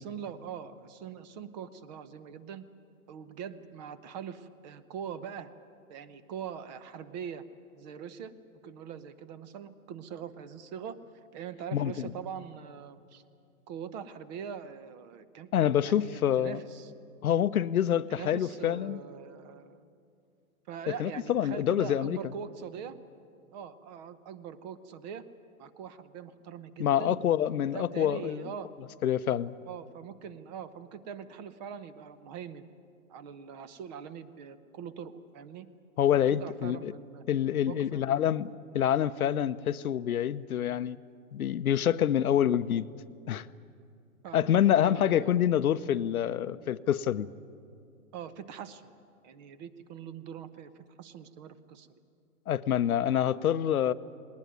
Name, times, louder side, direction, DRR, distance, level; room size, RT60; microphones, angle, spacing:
voice 1, 0.0-2.6 3.1-5.5 5.9-7.4 7.8-8.3 8.6-11.0 11.3-13.2 13.7-16.9 18.1-19.8 20.7-23.0 23.5-25.2 25.6-27.2 27.7-28.7 29.6-32.7 33.1-35.7 36.3-37.2 37.6-38.2 44.2-44.5 44.8-45.4 48.1-48.9 49.2-51.9, right 8 dB, 30° right, 14 dB, 0.9 m, -42 dB
voice 2, 11.7-12.1 15.5-16.6 17.2-19.0 20.9-22.2 26.8-28.5 29.0-29.5 36.0-36.9 37.3-41.0 41.3-42.9 43.3-43.5 44.3-47.3 52.5-53.9, left 10 dB, 85° left, 14 dB, 0.8 m, -27 dB
20.0 x 19.0 x 9.4 m, 2.4 s
hypercardioid pair, 145°, 42 cm